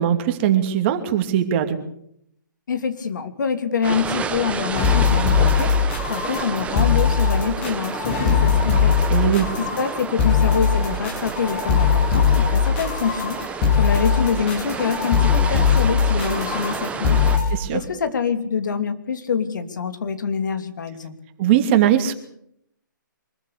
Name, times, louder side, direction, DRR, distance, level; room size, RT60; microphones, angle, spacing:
voice 1, 0.0-1.8 9.1-9.5 17.5-17.8 21.4-22.1, right 10 dB, 35° right, 7 dB, 2.7 m, -20 dB
voice 2, 2.7-5.7 6.1-9.0 9.6-13.4 13.7-17.2 17.7-21.1, left 6 dB, 65° left, 9 dB, 2.9 m, -25 dB
sound 1, 3.8-17.4, right 6 dB, 10° right, 1.4 m, -31 dB
sound 2, 4.7-17.5, left 6 dB, 35° left, 6.5 m, -20 dB
24.5 x 14.5 x 8.5 m, 0.71 s
hypercardioid pair, 140°, 11 cm